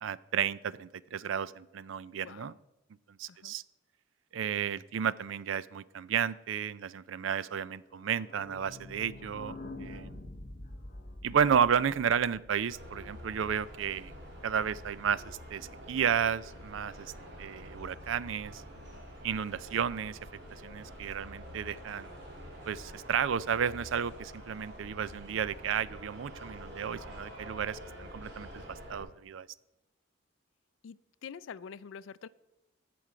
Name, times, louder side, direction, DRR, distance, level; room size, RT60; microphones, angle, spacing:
voice 1, 0.0-2.5 3.2-3.6 4.3-10.2 11.2-14.1 14.4-17.1 17.4-18.6 19.2-20.2 20.5-22.1 22.7-28.6 28.9-29.5, right 7 dB, 80° right, 19 dB, 0.4 m, -32 dB
voice 2, 2.2-2.6 3.3-3.5 30.8-32.3, left 6 dB, 80° left, 18 dB, 0.4 m, -46 dB
sound 1, 7.9-13.5 13.8-13.9 14.1-14.2 14.4-14.5, left 2 dB, 40° left, 0.8 m, -46 dB
sound 2, 12.7-29.0, equal, 55° right, 2.7 m, -47 dB
15.5 x 6.1 x 4.9 m, 0.95 s
head